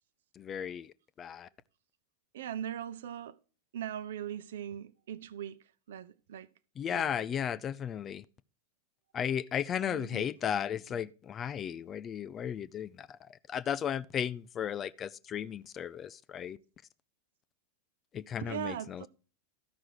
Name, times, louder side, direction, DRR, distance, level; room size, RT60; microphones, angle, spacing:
voice 1, 0.3-1.5 6.8-8.3 9.1-16.6 18.1-19.1, left 8 dB, 25° left, 0.5 m, -35 dB
voice 2, 2.3-3.3 3.7-6.5 6.9-7.3 9.8-10.3 18.4-19.1, right 10 dB, 60° right, 0.7 m, -40 dB
13.5 x 6.1 x 4.8 m
figure-of-eight pair, 90°, 0 cm